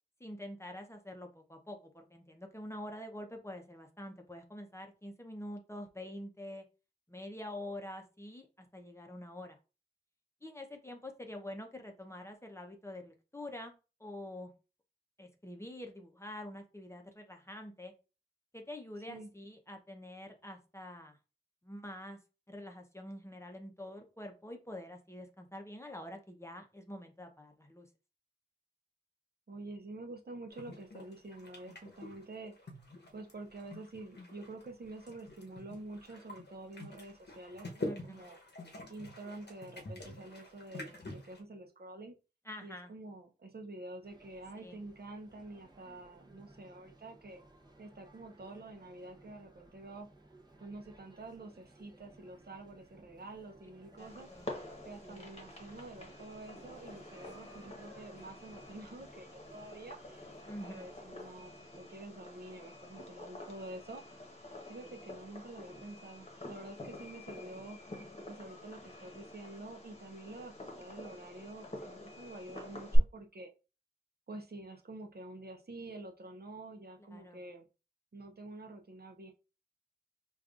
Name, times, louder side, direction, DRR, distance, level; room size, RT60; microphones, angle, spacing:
voice 1, 0.2-6.6 7.1-9.6 10.4-13.7 14.0-14.5 15.2-17.9 18.5-21.2 21.6-22.2 22.5-27.9 37.8-38.3 42.5-42.9 44.6-44.8 54.0-54.5 55.0-55.3 60.5-60.9 77.1-77.4, left 1 dB, 15° left, 3 dB, 0.6 m, -46 dB
voice 2, 29.5-32.5 33.1-38.4 38.9-42.1 42.6-47.4 47.8-50.1 50.6-54.3 54.8-60.3 60.6-64.0 64.7-67.8 68.3-73.5 74.3-77.7 78.1-79.3, right 2 dB, 60° right, 3 dB, 0.6 m, -48 dB
sound 1, 30.5-41.4, left 2 dB, 65° left, 0.8 m, -47 dB
sound 2, 44.0-61.6, right 2 dB, 20° right, 0.7 m, -59 dB
Fireworks, 54.0-73.0, equal, 35° left, 1.0 m, -45 dB
5.1 x 2.4 x 2.4 m, 0.32 s
wide cardioid pair, 70°, 19 cm